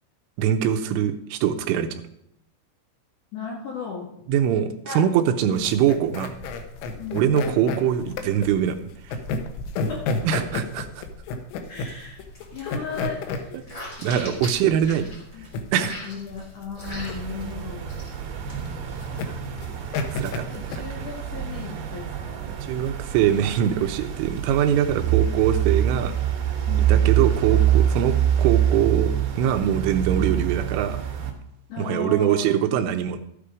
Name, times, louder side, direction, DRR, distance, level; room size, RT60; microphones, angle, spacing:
voice 1, 0.4-1.9 4.3-6.3 7.1-9.2 10.3-11.0 13.5-13.6 14.0-15.1 15.7-16.1 19.1-19.4 19.9-20.4 20.8-20.9 22.5-26.3 26.9-31.0 31.8-33.2, right 9 dB, 85° right, 7 dB, 3.2 m, -23 dB
voice 2, 3.3-4.1 4.9-5.0 7.0-7.4 9.7-10.0 11.7-12.2 12.5-13.6 13.9-14.4 15.3-15.5 16.0-18.0 20.5-22.5 26.6-27.0 31.7-33.0, left 5 dB, 55° left, -2 dB, 2.5 m, -35 dB
sound 1, 5.5-21.7, left 3 dB, 75° left, 3.4 m, -32 dB
sound 2, 11.6-12.0 12.3-15.5 15.8-17.5 17.8-18.1 18.5-19.2, left 1 dB, 20° left, 2.8 m, -41 dB
sound 3, 16.9-31.3, right 10 dB, 70° right, 3.8 m, -25 dB
13.5 x 8.3 x 5.0 m, 0.77 s
omnidirectional pair, 5.8 m